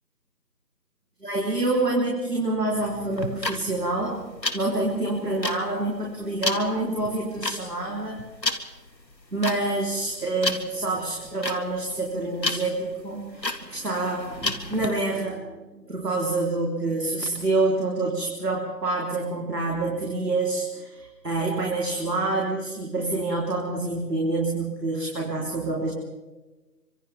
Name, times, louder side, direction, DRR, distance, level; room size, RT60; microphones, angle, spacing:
voice 1, 1.2-4.2 4.5-8.2 9.3-25.9, right 2 dB, 65° right, -2 dB, 4.0 m, -27 dB
sound 1, 3.1-14.9, left 2 dB, 85° left, 2.2 m, -32 dB
28.5 x 25.0 x 3.6 m, 1.2 s
figure-of-eight pair, 170°, 50 cm